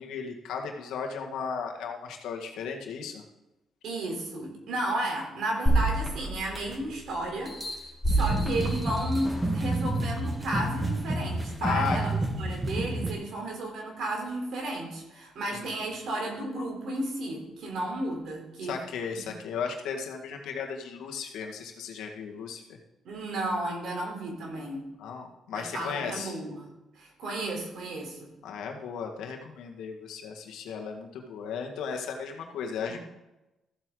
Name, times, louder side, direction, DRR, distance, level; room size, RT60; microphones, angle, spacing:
voice 1, 0.0-3.2 11.6-12.0 15.5-15.6 18.6-22.8 25.0-26.4 28.4-33.0, left 6 dB, 85° left, 2 dB, 1.7 m, -35 dB
voice 2, 3.8-7.6 8.1-18.7 19.1-19.2 23.0-24.9 25.5-26.7 27.0-28.3 32.9-33.0, right 1 dB, 75° right, 0 dB, 3.6 m, -33 dB
sound 1, 5.7-7.0 7.5-9.6 10.2-10.3, right 1 dB, 5° left, 3.3 m, -28 dB
sound 2, 8.1-13.1, right 2 dB, 20° right, 1.6 m, -30 dB
14.5 x 7.9 x 3.9 m, 0.98 s
cardioid pair, 90°, 0 cm